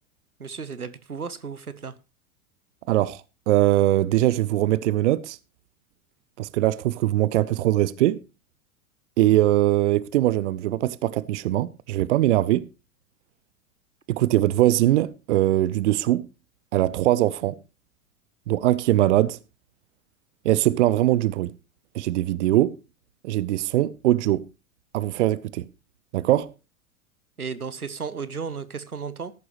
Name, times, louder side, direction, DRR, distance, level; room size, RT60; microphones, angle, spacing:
voice 1, 0.4-2.0 27.4-29.3, right 5 dB, 90° right, 0.9 m, -34 dB
voice 2, 2.9-5.4 6.4-8.2 9.2-12.7 14.1-16.3 16.7-17.6 18.5-19.4 20.4-21.5 21.9-22.8 23.2-24.5 24.9-25.7 26.1-26.5, right 14 dB, 55° right, 0.7 m, -21 dB
14.5 x 11.0 x 3.1 m
figure-of-eight pair, 90°, 43 cm